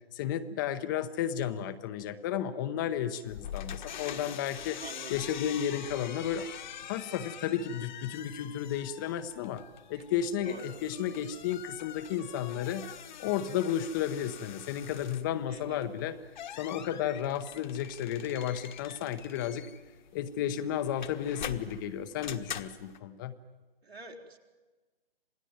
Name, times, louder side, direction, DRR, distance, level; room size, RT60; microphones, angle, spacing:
voice 1, 0.1-4.8 5.1-6.5 6.9-9.6 9.9-12.9 13.2-16.2 16.6-19.7 20.1-23.3, left 9 dB, 20° left, 11 dB, 0.8 m, -33 dB
sound 1, 3.3-23.0, left 9 dB, 50° left, 1.4 m, -45 dB
voice 2, 4.8-5.2 10.0-10.1 10.4-10.7 15.5-15.9 23.8-24.4, right 3 dB, 80° right, 2 dB, 4.4 m, -46 dB
27.5 x 19.0 x 9.3 m, 1.3 s
figure-of-eight pair, 145°, 31 cm